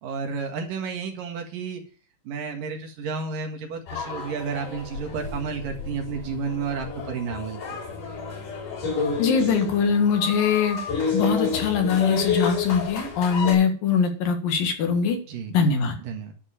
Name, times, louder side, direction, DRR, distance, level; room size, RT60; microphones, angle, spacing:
voice 1, 0.0-1.8 2.3-7.8 15.3-15.6 16.0-16.3, right 5 dB, 75° right, 3 dB, 3.4 m, -31 dB
sound 1, 3.9-13.5, left 5 dB, 65° left, 6.2 m, -30 dB
voice 2, 9.2-10.8 11.1-15.2 15.5-16.0, left 6 dB, 80° left, 5 dB, 3.4 m, -22 dB
11.0 x 5.1 x 7.4 m, 0.41 s
omnidirectional pair, 3.9 m